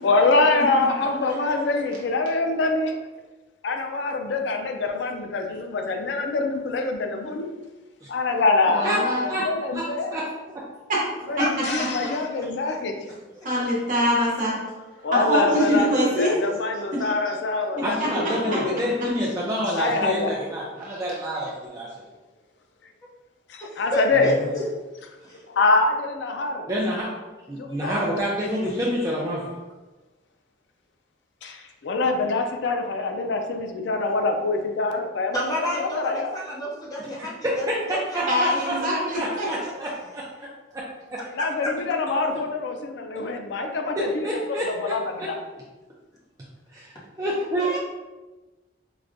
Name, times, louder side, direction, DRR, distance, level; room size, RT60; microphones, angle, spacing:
voice 1, 0.0-3.0 3.6-7.5 8.1-10.1 11.3-13.0 15.0-15.9 16.2-18.8 19.8-20.3 23.5-24.3 25.5-26.7 27.6-28.0 31.4-36.3 41.3-44.4 44.8-45.3, left 3 dB, 75° left, 4 dB, 0.4 m, -25 dB
voice 2, 1.0-1.3 2.1-2.3 11.4-12.8 13.0-13.5 15.7-17.1 23.6-24.6 25.2-25.4 27.8-28.3 35.3-37.3 37.6-39.7 41.2-41.7 47.6-47.8, equal, 20° left, -5 dB, 0.7 m, -32 dB
voice 3, 8.7-9.2 10.9-11.0 11.4-11.9 13.4-14.6 15.1-16.4 16.9-17.0 17.7-18.6 20.8-21.0 38.3-39.5, equal, 45° right, -5 dB, 1.0 m, -24 dB
voice 4, 9.7-10.3 10.5-10.6 17.8-21.9 24.1-24.5 26.7-27.1 27.5-29.5 37.4-40.2 44.0-45.3 46.7-47.7, equal, 20° right, -5 dB, 0.4 m, -28 dB
4.8 x 2.1 x 2.5 m, 1.2 s
head